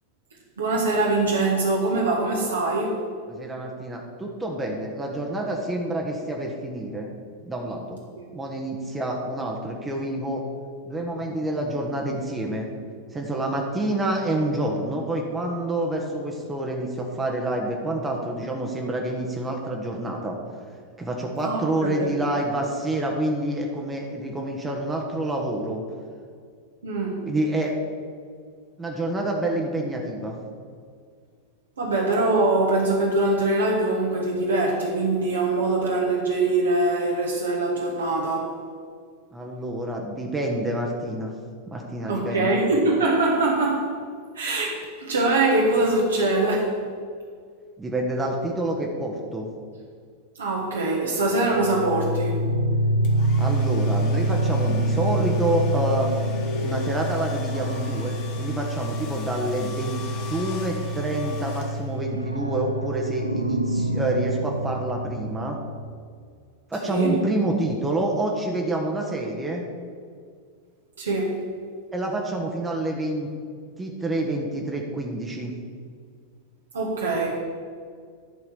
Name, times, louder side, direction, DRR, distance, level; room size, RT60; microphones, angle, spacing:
voice 1, 0.6-3.1 8.2-8.3 21.4-22.1 26.8-27.2 31.8-38.5 42.1-43.9 44.3-46.8 50.4-52.4 66.8-67.2 71.0-71.4 76.7-77.4, right 2 dB, 70° right, -2 dB, 1.4 m, -23 dB
voice 2, 3.3-7.1 7.5-8.0 8.3-10.4 10.8-12.7 13.1-20.4 21.0-25.8 27.2-27.7 28.8-30.4 39.3-41.3 41.7-42.5 47.8-49.5 53.4-56.1 56.6-65.6 66.7-69.6 71.9-73.3 73.8-75.5, right 1 dB, 15° right, 0 dB, 1.2 m, -28 dB
sound 1, 51.5-66.1, right 1 dB, 90° right, 0.4 m, -27 dB
Domestic sounds home sounds, 53.0-62.2, left 5 dB, 45° left, 1.5 m, -43 dB
11.0 x 4.7 x 7.2 m, 2.1 s
figure-of-eight pair, 90°, 0 cm